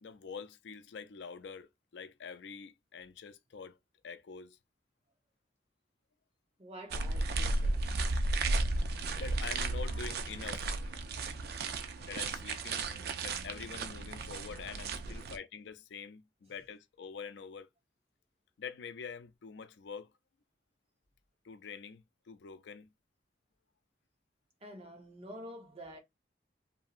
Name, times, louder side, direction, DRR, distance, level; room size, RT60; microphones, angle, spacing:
voice 1, 0.0-1.7 1.9-3.8 4.0-4.6 8.6-11.7 12.0-17.7 18.6-20.1 21.4-22.9, left 6 dB, 75° left, 0.4 m, -46 dB
voice 2, 6.6-8.0 15.0-15.4 24.6-26.0, equal, 35° right, 0.9 m, -49 dB
sound 1, 6.9-15.4, right 2 dB, 60° right, 0.4 m, -34 dB
2.9 x 2.6 x 2.4 m
head